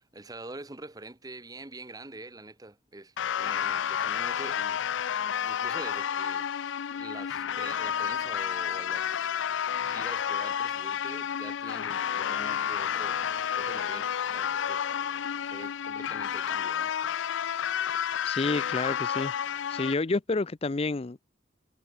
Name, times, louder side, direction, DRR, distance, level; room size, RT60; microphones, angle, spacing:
voice 1, 0.0-4.8 5.4-6.5 6.9-9.5 9.8-13.2 13.5-14.8 15.4-16.9, right 2 dB, 20° right, 1.3 m, -45 dB
sound 1, 3.2-19.9, left 9 dB, 90° left, 0.4 m, -30 dB
sound 2, 7.2-18.2, right 3 dB, 70° right, 2.4 m, -55 dB
voice 2, 18.2-19.3 19.7-21.2, left 3 dB, 30° left, 0.5 m, -29 dB
head